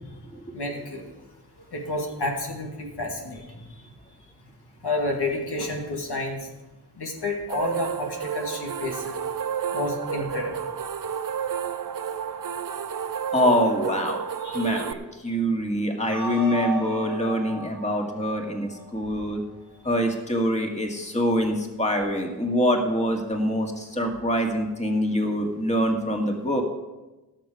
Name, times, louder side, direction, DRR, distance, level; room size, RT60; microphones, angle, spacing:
voice 1, 0.5-1.1 1.7-3.7 4.8-6.4 7.0-9.2 9.7-10.6 14.4-14.8, left 2 dB, 75° left, 0 dB, 2.2 m, -30 dB
sound 1, 7.5-14.9, right 8 dB, 55° right, 0.7 m, -31 dB
voice 2, 13.3-14.2 14.5-19.4 19.8-26.6, equal, 15° left, 1 dB, 2.1 m, -25 dB
sound 2, 16.1-19.2, right 2 dB, 50° left, 4.3 m, -35 dB
18.0 x 6.6 x 4.9 m, 1.1 s
cardioid pair, 50°, 40 cm